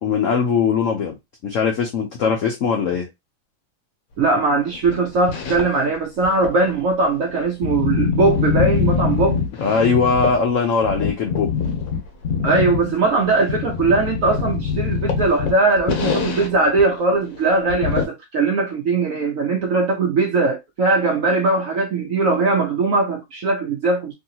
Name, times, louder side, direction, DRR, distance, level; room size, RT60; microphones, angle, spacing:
voice 1, 0.0-1.2 1.4-3.1 9.6-11.5, left 5 dB, 85° left, 0.7 m, -20 dB
voice 2, 4.2-9.4 12.4-24.1, right 3 dB, 85° right, 0.7 m, -20 dB
sound 1, 4.7-5.9 6.2-10.5 10.8-16.5 16.8-16.9 17.2-17.3 17.7-18.1, left 6 dB, 55° left, 1.1 m, -23 dB
3.1 x 2.7 x 2.8 m
omnidirectional pair, 2.1 m